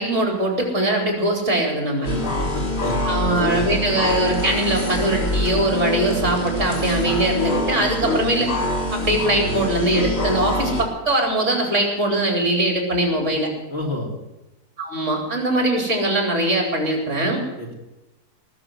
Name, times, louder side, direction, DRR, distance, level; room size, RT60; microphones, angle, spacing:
voice 1, 0.0-2.1 3.0-8.5 8.9-13.5 14.8-17.4, right 1 dB, 50° right, 1 dB, 4.2 m, -21 dB
sound 1, 2.0-10.8, left 1 dB, 55° left, 3.0 m, -25 dB
voice 2, 2.1-3.6 13.7-14.1 17.6-17.7, left 1 dB, 40° left, 1 dB, 2.9 m, -30 dB
sound 2, 4.0-8.4 8.8-8.9, left 1 dB, 20° left, 3.3 m, -39 dB
19.5 x 7.2 x 9.6 m, 1.0 s
omnidirectional pair, 1.7 m